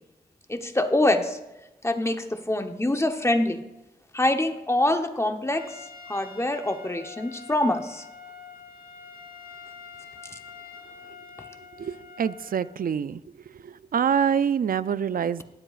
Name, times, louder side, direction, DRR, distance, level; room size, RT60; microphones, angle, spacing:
voice 1, 0.5-1.4 1.8-3.6 4.1-5.6 6.1-8.0, left 1 dB, 15° left, 6 dB, 0.9 m, -25 dB
Trumpet, 5.5-12.8, left 5 dB, 70° left, 1.0 m, -45 dB
voice 2, 11.8-13.2 13.6-15.4, right 7 dB, 65° right, 16 dB, 0.4 m, -26 dB
18.5 x 7.8 x 2.5 m, 0.97 s
cardioid pair, 65°, 16 cm